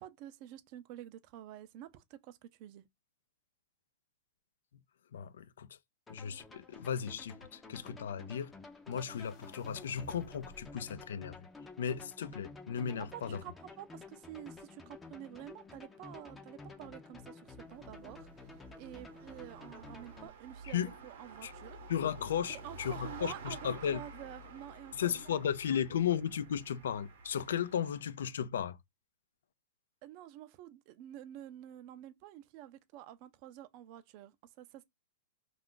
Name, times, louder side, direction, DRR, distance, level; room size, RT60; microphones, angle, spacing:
voice 1, 0.0-2.8 12.9-21.8 22.5-26.1 30.0-34.8, right 12 dB, 45° right, 0.4 m, -49 dB
voice 2, 5.1-5.7 6.1-8.5 8.9-11.4 11.8-13.4 20.7-20.9 21.4-21.5 21.9-24.0 24.9-28.8, left 8 dB, 80° left, 0.3 m, -35 dB
sound 1, 6.1-20.3, left 3 dB, 10° left, 0.5 m, -52 dB
sound 2, 8.9-10.9, left 2 dB, 40° left, 0.9 m, -55 dB
sound 3, 17.5-28.1, right 2 dB, 70° right, 0.8 m, -51 dB
2.4 x 2.4 x 3.6 m
hypercardioid pair, 135°, 0 cm